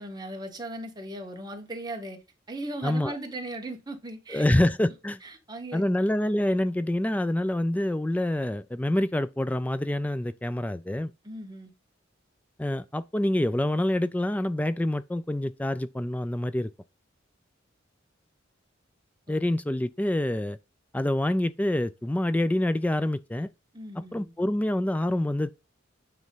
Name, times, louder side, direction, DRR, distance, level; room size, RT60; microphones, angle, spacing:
voice 1, 0.0-2.2 2.5-4.4 5.2-5.8 11.2-11.7 19.3-19.4 23.7-24.3, right 1 dB, 20° right, 1.7 m, -37 dB
voice 2, 2.8-3.2 4.3-5.2 5.7-11.1 12.6-16.7 19.3-20.6 20.9-23.5 24.0-25.5, left 1 dB, 10° left, 0.3 m, -26 dB
9.2 x 3.5 x 5.6 m
head